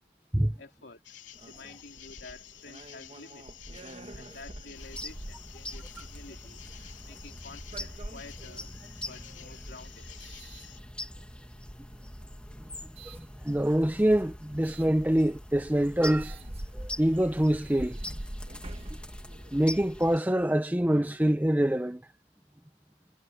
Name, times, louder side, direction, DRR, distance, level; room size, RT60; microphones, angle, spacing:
voice 1, 0.6-1.0 1.4-3.7 4.1-6.6 7.0-8.7 9.1-10.1 13.2-13.4, left 3 dB, 60° left, 3.5 m, -50 dB
sound 1, 1.0-10.8, left 11 dB, 85° left, 3.4 m, -51 dB
sound 2, 1.3-11.4 12.0-13.3 14.6-14.9 15.4-15.5 15.8-20.0, right 1 dB, 35° right, 1.3 m, -45 dB
sound 3, 4.7-20.2, left 1 dB, 5° left, 1.9 m, -44 dB
voice 2, 13.1-16.4 16.7-18.0 19.5-22.0, right 1 dB, 10° right, 0.6 m, -25 dB
head